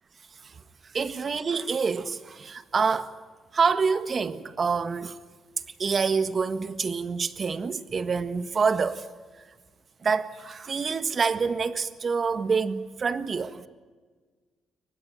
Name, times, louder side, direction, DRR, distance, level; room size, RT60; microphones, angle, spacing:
voice 1, 0.9-3.1 3.5-5.1 5.8-9.1 10.0-13.7, right 5 dB, 40° right, 1.6 m, -27 dB
24.0 x 20.0 x 9.3 m
cardioid pair, 90°, 0 cm